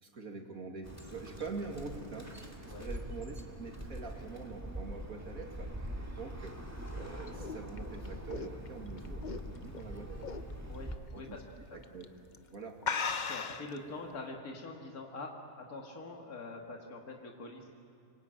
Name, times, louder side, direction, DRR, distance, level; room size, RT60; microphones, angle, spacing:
voice 1, 0.0-2.3 2.6-5.7 6.1-10.3 11.1-11.4 11.7-12.1 12.5-12.8, right 4 dB, 70° right, 2 dB, 2.8 m, -44 dB
Bird, 0.8-11.0, equal, 10° right, 2.0 m, -43 dB
sound 1, 6.7-9.8 10.2-10.5 10.9-11.0 11.8-12.0 12.3-12.4 12.8-13.8, left 5 dB, 40° left, 0.8 m, -37 dB
voice 2, 10.6-11.4 11.7-11.8 13.3-17.7, left 3 dB, 75° left, 1 dB, 2.5 m, -44 dB
25.5 x 22.0 x 8.9 m, 2.5 s
omnidirectional pair, 1.6 m